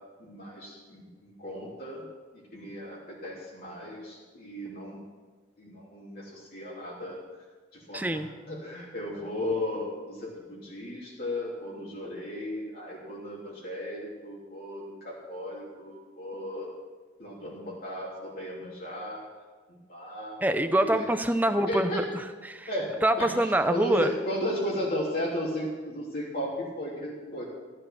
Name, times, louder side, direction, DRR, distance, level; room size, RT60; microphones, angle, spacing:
voice 1, 0.2-2.0 2.3-5.0 5.6-7.2 7.7-8.1 8.5-16.7 17.2-19.2 19.7-20.4 20.7-21.0 21.5-22.0 22.7-27.4, left 1 dB, 50° left, -6 dB, 3.3 m, -35 dB
voice 2, 7.9-8.3 20.4-22.7 23.0-24.1, right 1 dB, 10° right, 9 dB, 0.6 m, -25 dB
15.5 x 10.0 x 6.0 m, 1.3 s
head